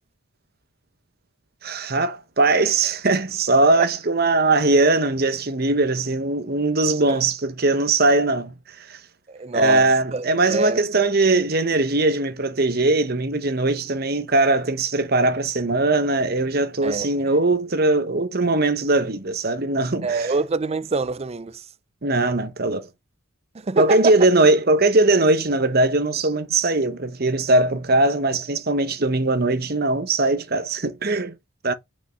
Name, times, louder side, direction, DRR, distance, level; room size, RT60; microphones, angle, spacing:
voice 1, 1.6-9.0 9.5-20.3 22.0-22.9 23.8-31.3 31.6-31.7, right 2 dB, 45° right, 1.0 m, -20 dB
voice 2, 9.3-9.9 10.1-10.8 16.8-17.1 20.0-21.7 23.5-24.1, right 4 dB, 30° right, 0.4 m, -25 dB
5.7 x 5.4 x 6.2 m
head